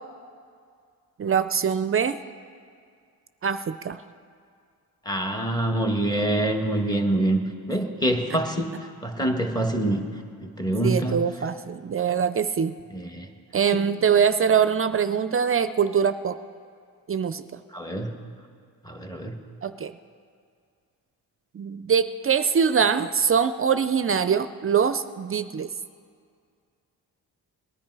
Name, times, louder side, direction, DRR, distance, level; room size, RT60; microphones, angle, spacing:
voice 1, 1.2-2.2 3.4-4.0 10.8-12.8 13.5-16.4 17.1-17.4 19.6-20.0 21.5-25.7, right 7 dB, 35° right, 12 dB, 0.4 m, -23 dB
voice 2, 5.0-7.4 7.7-10.1 10.4-11.3 12.9-13.3 17.7-18.2 18.8-19.4, right 1 dB, 10° left, 4 dB, 1.5 m, -25 dB
19.0 x 10.5 x 4.7 m, 2.2 s
cardioid pair, 80°, 38 cm